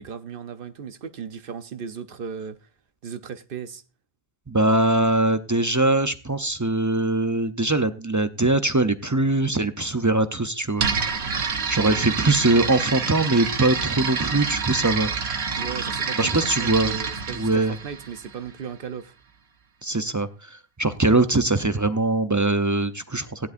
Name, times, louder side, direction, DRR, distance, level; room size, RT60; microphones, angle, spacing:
voice 1, 0.0-2.6 3.0-3.8 11.5-11.6 11.8-12.2 15.6-19.1, right 7 dB, 60° right, 0.9 m, -36 dB
voice 2, 4.5-10.9 11.7-15.1 16.2-17.0 17.3-17.8 19.8-23.5, right 2 dB, 25° right, 0.5 m, -22 dB
sound 1, 10.8-18.6, right 5 dB, 80° right, 1.2 m, -28 dB
16.0 x 11.0 x 2.6 m
omnidirectional pair, 1.1 m